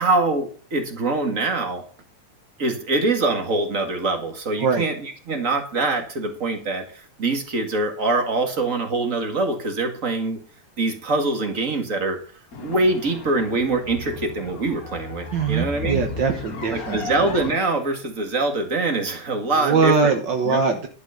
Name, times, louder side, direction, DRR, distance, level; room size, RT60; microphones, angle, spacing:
voice 1, 0.0-1.8 2.6-10.4 10.8-12.2 12.6-16.0 16.7-20.1 20.4-20.6, right 2 dB, 30° right, 5 dB, 1.6 m, -24 dB
sound 1, 12.5-17.5, left 5 dB, 45° left, 1.3 m, -35 dB
voice 2, 15.3-17.0 19.6-20.9, right 5 dB, 75° right, 5 dB, 1.0 m, -21 dB
11.5 x 6.3 x 6.5 m, 0.41 s
omnidirectional pair, 3.6 m